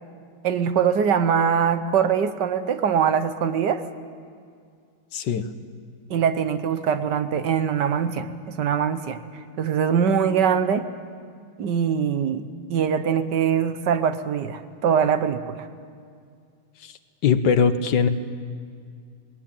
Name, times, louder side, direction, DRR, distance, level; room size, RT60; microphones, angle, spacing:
voice 1, 0.4-3.8 6.1-9.2 9.6-10.9 11.6-12.4 12.7-15.7, right 7 dB, 70° right, 10 dB, 1.6 m, -22 dB
voice 2, 5.1-5.5 16.8-16.9 17.2-18.1, left 6 dB, 75° left, 11 dB, 1.6 m, -20 dB
20.5 x 19.0 x 8.9 m, 2.2 s
omnidirectional pair, 1.9 m